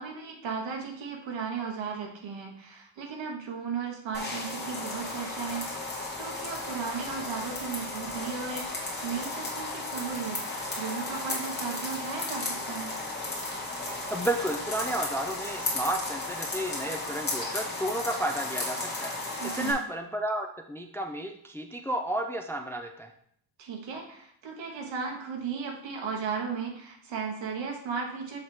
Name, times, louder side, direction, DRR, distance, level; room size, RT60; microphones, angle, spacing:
voice 1, 0.0-12.9 19.4-19.8 23.6-28.4, right 6 dB, 80° right, 1 dB, 1.6 m, -36 dB
sound 1, 4.1-19.7, left 2 dB, 25° left, 1.7 m, -34 dB
voice 2, 14.1-23.1, right 1 dB, 5° left, 5 dB, 0.4 m, -32 dB
6.5 x 3.7 x 4.5 m, 0.67 s
cardioid pair, 135°, 44 cm